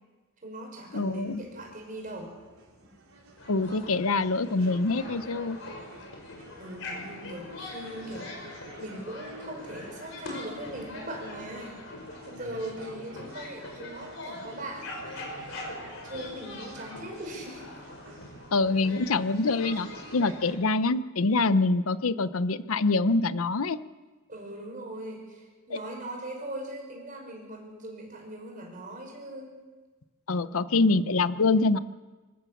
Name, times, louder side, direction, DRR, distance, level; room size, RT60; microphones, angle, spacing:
voice 1, 0.4-2.3 6.6-11.8 12.3-15.3 16.0-17.6 18.7-18.8 24.3-29.5, right 1 dB, 40° right, 0 dB, 5.8 m, -40 dB
voice 2, 0.9-1.4 3.5-5.6 18.5-23.8 30.3-31.8, left 3 dB, 80° left, 14 dB, 0.7 m, -25 dB
sound 1, 0.9-20.3, right 2 dB, 80° right, 4.5 m, -52 dB
sound 2, 3.4-20.5, left 2 dB, 65° left, 5.0 m, -42 dB
26.0 x 14.0 x 7.2 m, 1.3 s
head